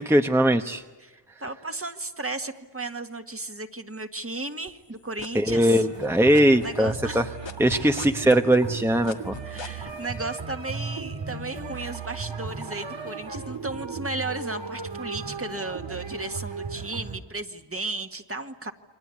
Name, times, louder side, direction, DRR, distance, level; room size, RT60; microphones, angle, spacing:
voice 1, 0.0-0.8 5.3-7.2 7.6-9.4, right 1 dB, 5° right, 6 dB, 1.0 m, -20 dB
voice 2, 1.0-5.9 6.6-7.3 9.4-18.7, right 2 dB, 30° right, 7 dB, 1.8 m, -34 dB
sound 1, 4.7-6.1 6.3-9.9, left 5 dB, 85° left, 1.7 m, -39 dB
sound 2, 5.5-17.2, right 5 dB, 80° right, 2.8 m, -36 dB
29.0 x 24.0 x 8.5 m, 1.2 s
wide cardioid pair, 85°, 43 cm